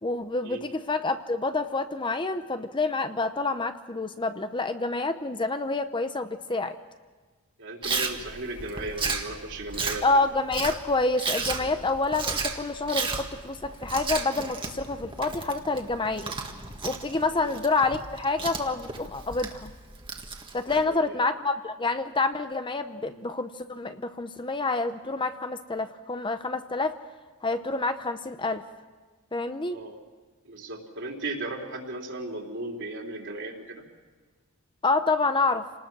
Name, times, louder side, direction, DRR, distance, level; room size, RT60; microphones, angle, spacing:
voice 1, 0.0-6.8 10.0-16.3 16.8-19.7 20.5-26.9 27.4-28.6 29.3-29.8 34.8-35.7, left 3 dB, 20° left, 9 dB, 0.8 m, -28 dB
voice 2, 7.6-10.1 17.4-17.6 20.7-21.2 29.7-30.0 30.5-33.9, right 2 dB, 55° right, 1 dB, 3.6 m, -36 dB
Chewing mastication, 7.8-20.8, right 4 dB, 25° right, 1.7 m, -34 dB
29.0 x 19.5 x 6.2 m, 1.4 s
head